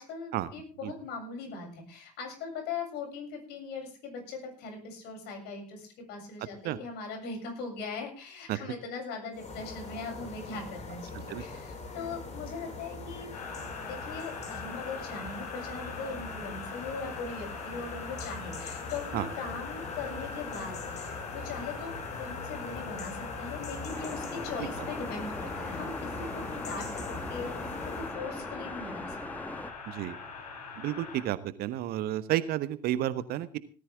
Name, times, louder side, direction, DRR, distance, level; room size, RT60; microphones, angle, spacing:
voice 1, 0.0-13.4 13.9-29.4, left 4 dB, 55° left, 3 dB, 7.5 m, -40 dB
sound 1, 9.3-28.2, left 3 dB, 35° left, 5.6 m, -42 dB
sound 2, 13.3-31.2, left 5 dB, 75° left, 4.4 m, -42 dB
sound 3, 23.9-29.7, left 1 dB, 10° left, 1.5 m, -40 dB
voice 2, 30.8-33.6, right 13 dB, 50° right, 15 dB, 1.2 m, -31 dB
18.5 x 14.0 x 3.6 m, 0.38 s
figure-of-eight pair, 60°, 20 cm